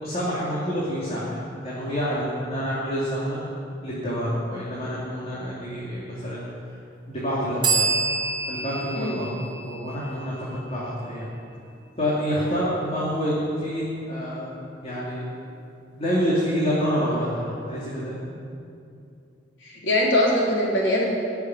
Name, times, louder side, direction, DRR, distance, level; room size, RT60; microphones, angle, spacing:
voice 1, 0.0-3.4 3.8-6.5 7.1-7.8 8.5-9.3 9.6-11.3 12.0-15.2 16.0-18.2, equal, 35° left, -8 dB, 3.0 m, -27 dB
sound 1, 7.6-11.2, right 4 dB, 30° right, 2.9 m, -28 dB
voice 2, 19.6-21.0, left 1 dB, 90° left, -4 dB, 4.0 m, -22 dB
16.5 x 8.0 x 9.6 m, 2.6 s
head